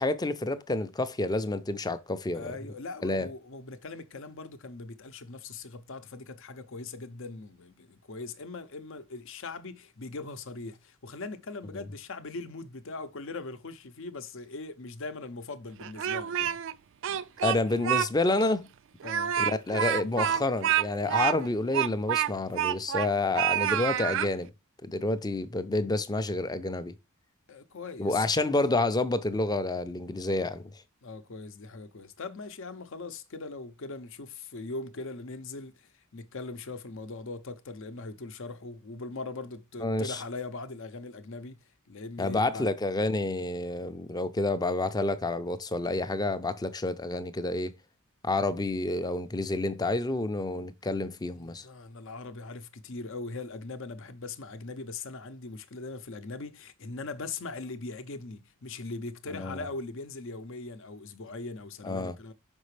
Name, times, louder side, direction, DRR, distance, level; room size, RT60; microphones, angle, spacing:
voice 1, 0.0-2.4 3.0-3.3 17.4-18.7 19.4-24.5 24.8-26.9 28.0-30.7 39.8-40.2 42.2-47.7 48.2-51.6 59.3-59.6 61.8-62.1, left 2 dB, 20° left, 0.5 m, -29 dB
voice 2, 2.3-16.6 17.1-17.3 19.0-19.4 27.5-28.3 31.0-42.7 51.3-62.3, left 3 dB, 65° left, 0.7 m, -40 dB
Speech, 15.8-16.7 17.0-18.1 18.4-18.5 19.0-23.1 23.3-24.3, right 10 dB, 60° right, 0.4 m, -28 dB
5.8 x 5.3 x 3.2 m
head